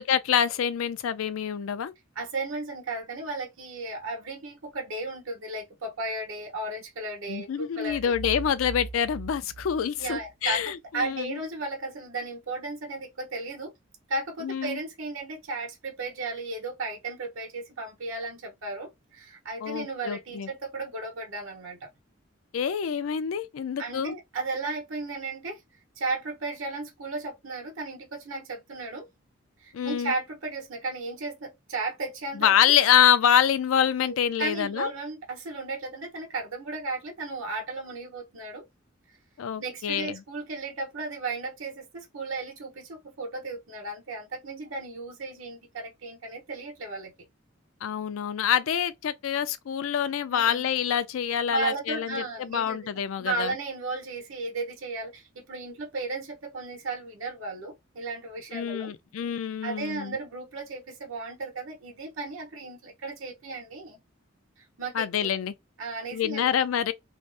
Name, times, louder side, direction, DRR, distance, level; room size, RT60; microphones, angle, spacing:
voice 1, 0.0-1.9 7.3-11.4 14.4-14.8 19.6-20.5 22.5-24.2 29.7-30.1 32.3-34.9 39.4-40.2 47.8-53.5 58.5-60.2 64.9-65.5 66.1-66.9, left 9 dB, 80° left, 0.4 m, -26 dB
voice 2, 2.2-8.1 10.0-10.6 10.9-13.7 14.1-21.9 23.8-25.6 26.0-29.1 29.6-32.6 34.0-38.7 39.6-47.1 50.3-50.7 51.5-52.8 53.2-58.9 59.6-64.0 64.6-65.3 65.8-66.5, right 3 dB, 85° right, 1.0 m, -35 dB
sound 1, 7.8-10.7, right 4 dB, 65° right, 0.6 m, -40 dB
2.6 x 2.0 x 3.3 m
head